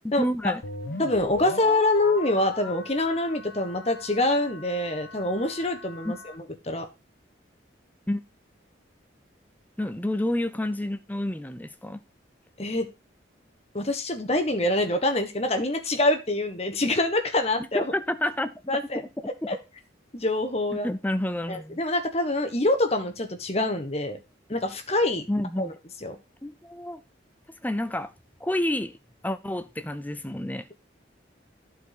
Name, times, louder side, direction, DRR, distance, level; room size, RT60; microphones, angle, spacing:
voice 1, 0.0-0.6 6.0-6.2 8.1-8.2 9.8-12.0 17.7-18.8 19.2-19.3 20.7-21.8 25.3-25.7 26.4-27.0 27.6-28.1 28.4-29.0 29.2-30.7, left 1 dB, 10° left, 0.6 m, -29 dB
sound 1, 0.6-6.3, left 2 dB, 85° left, 1.2 m, -38 dB
voice 2, 1.0-6.8 12.6-12.9 13.7-17.9 18.7-19.0 19.5-19.6 20.1-20.9 21.5-24.2 24.5-25.3 25.6-25.7 26.0-26.2, left 2 dB, 35° left, 1.3 m, -25 dB
11.5 x 4.7 x 3.9 m
head